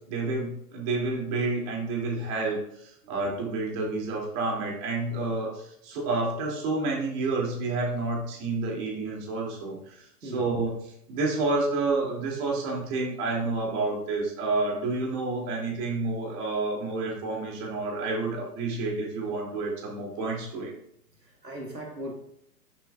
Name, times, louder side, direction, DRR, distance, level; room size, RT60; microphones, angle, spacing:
voice 1, 0.1-10.7 11.1-20.7, right 3 dB, 30° right, 2.5 m, -29 dB
voice 2, 21.2-22.1, equal, 90° right, 1.7 m, -39 dB
11.0 x 6.9 x 2.3 m
figure-of-eight pair, 115°, 48 cm